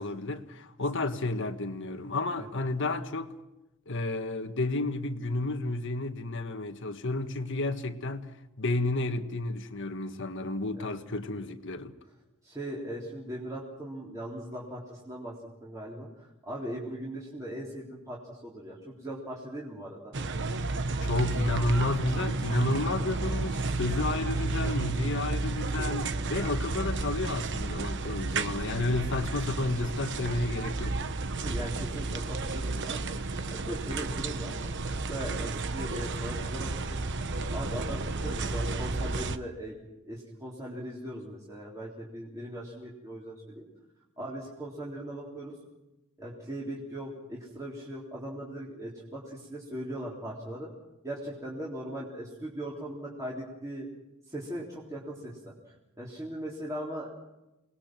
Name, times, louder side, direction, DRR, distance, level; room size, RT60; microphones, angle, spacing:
voice 1, 0.0-3.3 3.9-8.3 8.6-11.9 21.0-31.0, left 2 dB, 60° left, 1.6 m, -31 dB
voice 2, 12.4-15.4 15.6-16.1 16.4-20.1 26.3-26.5 31.4-37.0 37.5-39.8 40.0-43.7 44.2-45.5 46.2-50.7 51.0-53.9 54.3-57.1, right 1 dB, 15° right, 3.7 m, -39 dB
sound 1, 20.1-39.4, right 3 dB, 55° right, 1.1 m, -32 dB
28.5 x 20.5 x 6.1 m
head